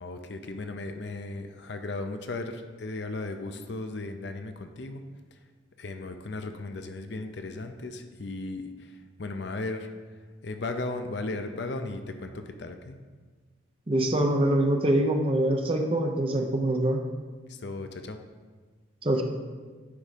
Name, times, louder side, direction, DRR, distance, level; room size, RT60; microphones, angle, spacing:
voice 1, 0.0-5.0 5.8-8.6 9.2-9.9 10.4-13.0 17.5-18.2, left 2 dB, 60° left, 7 dB, 0.6 m, -36 dB
voice 2, 13.9-17.0 19.0-19.2, right 1 dB, 30° right, 3 dB, 0.7 m, -24 dB
9.7 x 3.6 x 5.1 m, 1.4 s
head